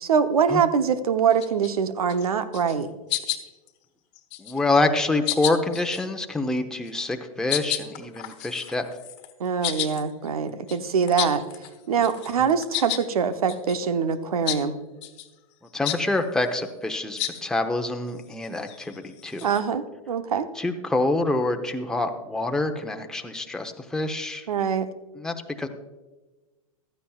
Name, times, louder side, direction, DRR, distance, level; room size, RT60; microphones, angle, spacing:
voice 1, 0.0-2.9 9.4-11.4 11.9-14.8 19.4-20.5 24.5-24.9, right 6 dB, 85° right, 10 dB, 0.9 m, -24 dB
sound 1, 1.3-1.7 2.1-2.3 2.5-2.8 3.1-3.7 4.1-4.7 5.2-6.1 6.9-7.1 7.5-11.8 12.0-13.1 13.5-13.8 14.5-14.6 15.0-15.3 15.8-16.0 17.2-17.4 18.1-19.6, left 14 dB, 55° left, 1.3 m, -32 dB
voice 2, 4.4-8.8 15.7-19.4 20.5-24.5 25.2-25.7, left 2 dB, 5° left, 4 dB, 0.8 m, -26 dB
15.5 x 13.0 x 2.4 m, 1.2 s
hypercardioid pair, 115°, 18 cm